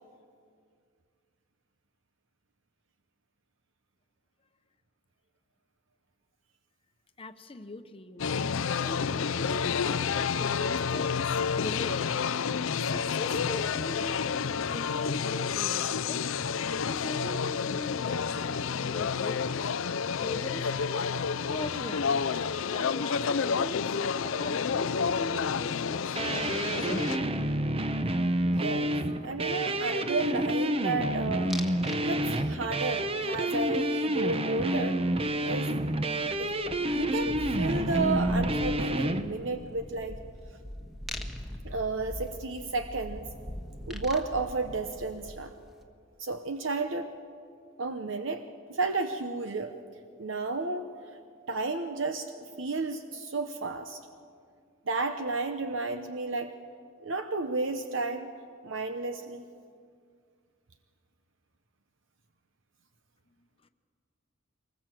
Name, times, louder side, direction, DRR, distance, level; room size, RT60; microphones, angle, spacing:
voice 1, 7.2-8.4 8.8-12.1 12.8-16.2 16.8-19.7 20.2-21.1 21.4-22.2 22.7-27.3, left 2 dB, 25° left, 9 dB, 1.0 m, -41 dB
sound 1, 8.2-27.2, left 6 dB, 75° left, 0.5 m, -30 dB
sound 2, 26.2-39.2, right 1 dB, 30° right, 0.9 m, -29 dB
voice 2, 28.4-29.0 29.2-31.6 32.0-35.0 35.4-35.7 36.4-36.5 36.8-40.2 41.6-43.3 43.9-45.5 46.2-47.1 47.8-49.7 50.2-50.9 51.5-54.0 54.9-56.5 57.0-58.3 58.6-59.5, right 3 dB, 65° right, 7 dB, 0.9 m, -32 dB
sound 3, 31.5-32.0 32.3-32.8 35.2-35.3 35.6-45.6, equal, ahead, 1.5 m, -41 dB
24.0 x 20.0 x 7.7 m, 2.3 s
head